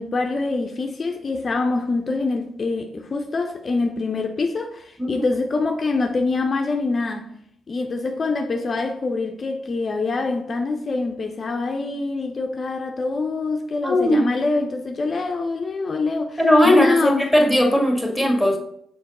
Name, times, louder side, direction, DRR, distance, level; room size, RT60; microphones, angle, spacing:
voice 1, 0.0-7.3 7.7-17.3, left 3 dB, 45° left, 0.5 m, -25 dB
voice 2, 13.8-14.3 16.4-18.6, left 1 dB, 5° right, 1.8 m, -17 dB
6.2 x 4.0 x 4.1 m
hypercardioid pair, 45°, 0 cm